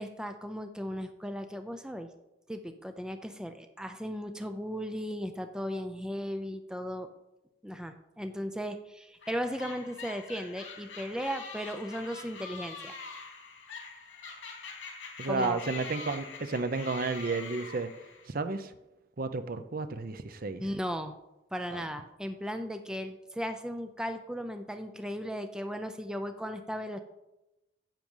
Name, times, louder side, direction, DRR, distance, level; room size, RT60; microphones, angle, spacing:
voice 1, 0.0-2.1 2.5-7.1 7.6-12.9 15.3-15.6 20.6-21.2 21.5-27.0, equal, 5° right, 7 dB, 0.5 m, -36 dB
sound 1, 9.2-18.3, left 5 dB, 80° left, 2.8 m, -44 dB
voice 2, 15.2-17.9 18.3-18.7 19.2-20.6 21.7-21.8, right 3 dB, 50° right, 11 dB, 0.6 m, -32 dB
9.9 x 7.6 x 5.4 m, 0.95 s
head